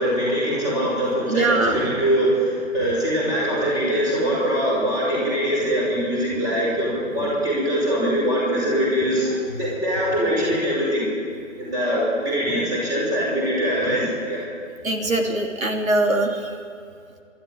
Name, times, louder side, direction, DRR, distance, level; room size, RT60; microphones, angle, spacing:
voice 1, 0.0-11.1 11.6-14.4, equal, 10° right, -4 dB, 5.3 m, -22 dB
voice 2, 1.3-1.8 14.8-16.5, right 2 dB, 80° right, 2 dB, 3.1 m, -22 dB
25.0 x 12.5 x 9.8 m, 2.2 s
figure-of-eight pair, 150°, 41 cm